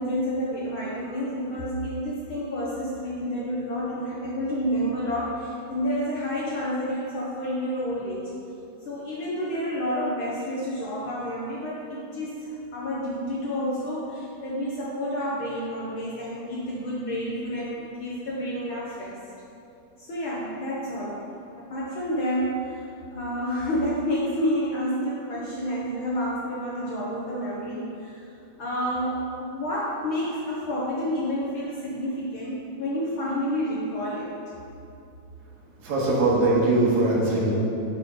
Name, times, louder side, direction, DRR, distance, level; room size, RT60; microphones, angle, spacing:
voice 1, 0.0-8.3 8.8-19.2 20.0-21.3 21.6-28.3 28.6-34.3, equal, 90° left, -5 dB, 1.1 m, -29 dB
voice 2, 35.8-37.5, right 2 dB, 70° right, -6 dB, 2.9 m, -21 dB
11.0 x 3.7 x 5.3 m, 2.8 s
omnidirectional pair, 3.5 m